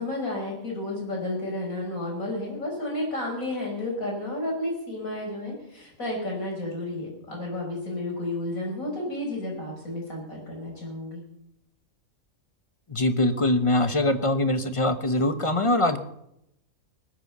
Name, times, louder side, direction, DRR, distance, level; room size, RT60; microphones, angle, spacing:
voice 1, 0.0-11.2, left 1 dB, 85° left, -1 dB, 6.2 m, -32 dB
voice 2, 12.9-16.0, left 1 dB, 25° left, 10 dB, 1.0 m, -23 dB
20.0 x 8.2 x 6.8 m, 0.78 s
omnidirectional pair, 1.4 m